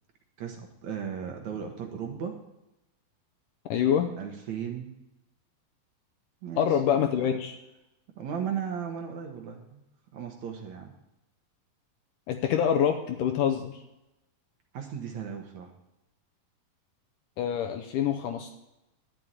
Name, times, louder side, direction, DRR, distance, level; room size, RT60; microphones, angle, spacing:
voice 1, 0.4-2.3 4.2-4.9 6.4-7.3 8.2-9.8 10.1-10.9 14.7-15.7, right 7 dB, 60° right, 3 dB, 2.2 m, -36 dB
voice 2, 3.7-4.1 6.6-7.6 12.3-13.8 17.4-18.5, left 9 dB, 75° left, 5 dB, 2.1 m, -26 dB
11.5 x 7.0 x 9.3 m, 0.94 s
omnidirectional pair, 4.3 m